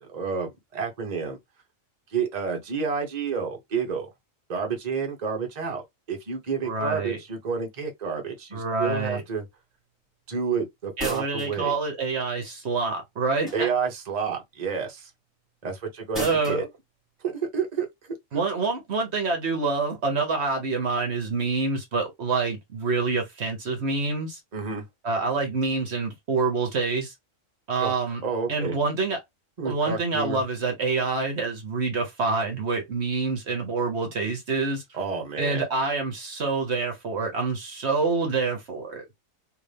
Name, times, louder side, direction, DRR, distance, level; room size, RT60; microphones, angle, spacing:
voice 1, 0.0-1.4 2.1-4.1 4.5-9.4 10.3-11.7 13.5-15.1 15.6-16.7 17.2-18.4 24.5-24.8 27.8-27.9 28.2-28.8 29.6-30.4 34.9-35.6, right 5 dB, 35° right, 1.1 m, -30 dB
voice 2, 6.6-7.2 8.5-9.2 11.0-13.7 16.2-16.7 18.3-24.4 25.0-27.1 27.7-28.2 28.5-29.2 29.6-34.8 35.4-39.1, right 4 dB, 55° right, 1.2 m, -27 dB
sound 1, 11.0-11.6 13.4-13.9 16.1-16.6, equal, ahead, 1.9 m, -35 dB
3.6 x 2.6 x 3.3 m
omnidirectional pair, 1.4 m